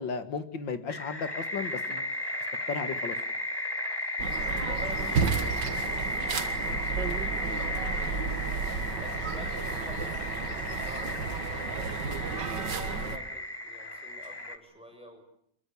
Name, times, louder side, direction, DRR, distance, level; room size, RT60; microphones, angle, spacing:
voice 1, 0.0-2.1 2.7-3.2 6.6-6.8 7.4-7.6, left 5 dB, 80° left, 10 dB, 2.5 m, -35 dB
sound 1, 0.9-14.6, left 1 dB, 15° left, 1.7 m, -34 dB
sound 2, 4.2-13.2, right 5 dB, 70° right, 2.3 m, -32 dB
voice 2, 4.6-8.3 9.0-15.2, equal, 5° right, 4 dB, 6.5 m, -49 dB
26.5 x 22.0 x 8.4 m, 0.69 s
omnidirectional pair, 2.0 m